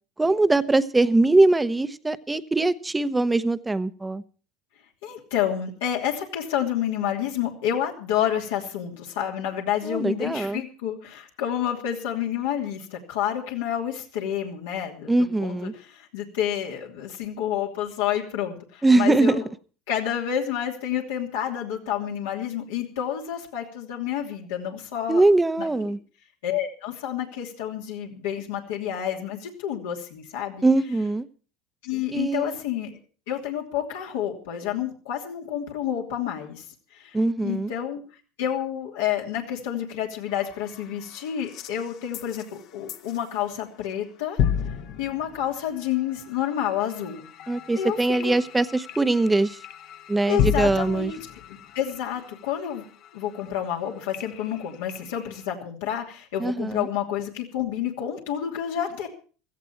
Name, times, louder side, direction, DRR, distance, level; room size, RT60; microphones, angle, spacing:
voice 1, 0.2-4.2 9.8-10.6 15.1-15.7 18.8-19.4 25.1-26.0 30.6-31.3 32.1-32.5 37.1-37.7 47.5-49.6 50.1-51.1 56.4-56.9, right 2 dB, 10° right, 14 dB, 0.9 m, -22 dB
voice 2, 5.0-19.4 19.9-25.2 25.6-25.7 26.4-30.6 31.8-33.0 33.3-36.6 36.9-37.2 37.4-38.0 38.4-44.4 45.0-47.3 47.8-48.4 50.3-51.2 51.7-52.8 53.1-59.1, left 10 dB, 85° left, -1 dB, 2.8 m, -29 dB
sound 1, 40.3-43.5 43.8-44.1 44.4-55.5, left 9 dB, 60° left, 1.3 m, -34 dB
16.5 x 14.0 x 4.6 m, 0.40 s
supercardioid pair, 100°, 0 cm